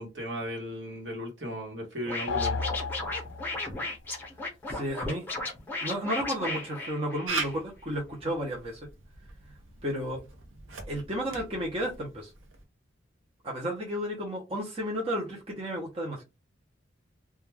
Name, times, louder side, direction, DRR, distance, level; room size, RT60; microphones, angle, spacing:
voice 1, 0.0-2.6, equal, 60° right, 1.1 m, -36 dB
Scratching (performance technique), 2.1-7.5, left 2 dB, 10° left, 0.8 m, -35 dB
sound 1, 2.3-3.8, left 4 dB, 70° left, 0.4 m, -32 dB
voice 2, 4.7-5.3 5.8-8.8 9.8-10.2 10.9-12.3 13.4-16.2, equal, 30° right, 0.7 m, -32 dB
Camera, 7.3-12.6, right 4 dB, 90° right, 0.7 m, -40 dB
2.3 x 2.2 x 3.2 m
head